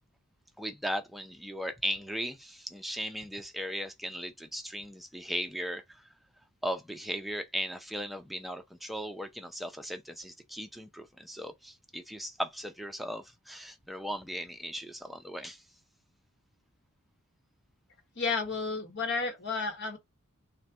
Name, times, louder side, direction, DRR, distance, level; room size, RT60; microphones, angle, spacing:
voice 1, 0.6-5.8 6.6-15.6, equal, ahead, 0.5 m, -37 dB
voice 2, 18.2-20.0, left 4 dB, 55° left, 1.2 m, -32 dB
3.9 x 2.2 x 4.3 m
head